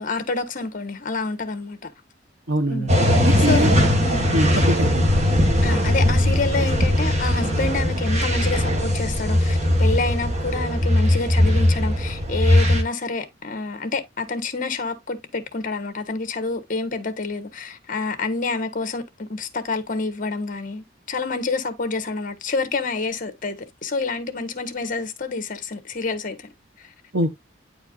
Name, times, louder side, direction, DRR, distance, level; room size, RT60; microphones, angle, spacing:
voice 1, 0.0-1.9 2.7-2.9 3.5-3.7 4.0-4.3 5.6-26.3, left 3 dB, 45° left, 1.4 m, -28 dB
voice 2, 2.5-2.9 3.2-3.7 4.3-5.0 27.1-27.4, right 1 dB, 70° right, 1.0 m, -23 dB
sound 1, 2.9-12.8, left 1 dB, 40° right, 1.7 m, -19 dB
9.6 x 4.6 x 2.5 m
head